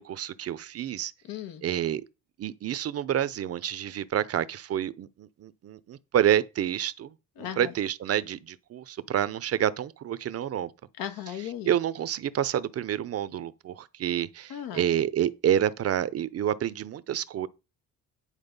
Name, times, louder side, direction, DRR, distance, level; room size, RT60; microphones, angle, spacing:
voice 1, 0.0-1.1 1.6-2.0 2.4-10.7 11.7-17.5, right 10 dB, 45° right, 0.7 m, -28 dB
voice 2, 1.2-1.6 7.4-7.7 11.0-11.7 14.5-14.8, left 10 dB, 85° left, 1.5 m, -36 dB
9.9 x 4.7 x 5.3 m
cardioid pair, 130°, 34 cm